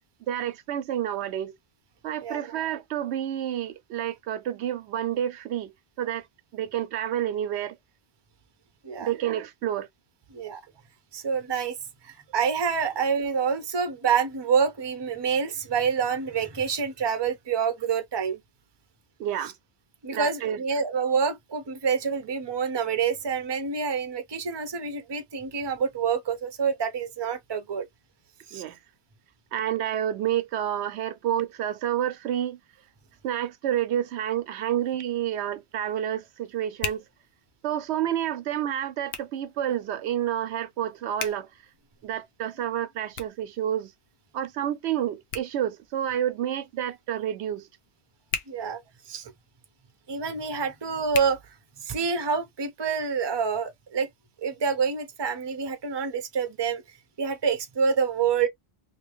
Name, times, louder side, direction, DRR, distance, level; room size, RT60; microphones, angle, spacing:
voice 1, 0.3-1.6 2.0-6.3 6.5-7.8 9.0-9.9 19.2-19.5 20.1-20.6 28.5-28.8 29.5-32.6 33.2-37.0 37.6-41.5 42.0-43.9 44.3-47.7, right 11 dB, 80° right, 0.8 m, -29 dB
voice 2, 11.1-11.7 12.0-18.4 20.0-27.9 28.5-28.6 48.5-48.8 49.1-49.3 50.1-51.4 51.8-54.1 54.4-56.8 57.2-58.5, right 6 dB, 30° right, 0.6 m, -27 dB
Hands, 34.5-52.2, left 6 dB, 65° left, 0.9 m, -43 dB
3.0 x 2.9 x 3.1 m
omnidirectional pair, 1.1 m